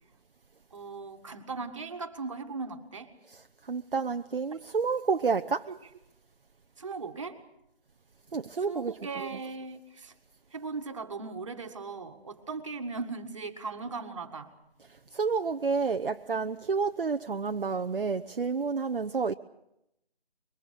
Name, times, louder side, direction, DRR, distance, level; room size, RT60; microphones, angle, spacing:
voice 1, 0.7-3.1 5.7-5.8 6.8-7.4 8.7-10.1 10.5-14.5, right 4 dB, 30° right, 1.9 m, -38 dB
voice 2, 3.3-5.7 8.3-8.9 9.3-9.4 15.1-19.3, right 5 dB, 55° right, 0.8 m, -30 dB
25.5 x 23.0 x 6.7 m
figure-of-eight pair, 170°, 33 cm